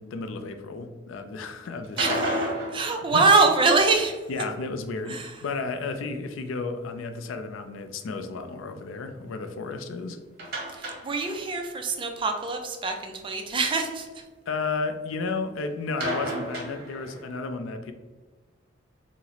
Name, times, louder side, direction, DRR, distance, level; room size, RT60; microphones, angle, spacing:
voice 1, 0.0-2.3 3.1-3.2 4.3-10.2 14.5-17.9, left 4 dB, 85° left, 8 dB, 0.4 m, -33 dB
sound 1, 1.8-4.0 10.4-11.7 11.9-12.0 12.4-12.5 16.0-17.3, right 1 dB, 50° right, 0.9 m, -32 dB
voice 2, 2.7-4.1 5.1-5.3 10.7-14.1, right 3 dB, 25° right, 4 dB, 0.4 m, -24 dB
3.9 x 2.0 x 2.8 m, 1.3 s
head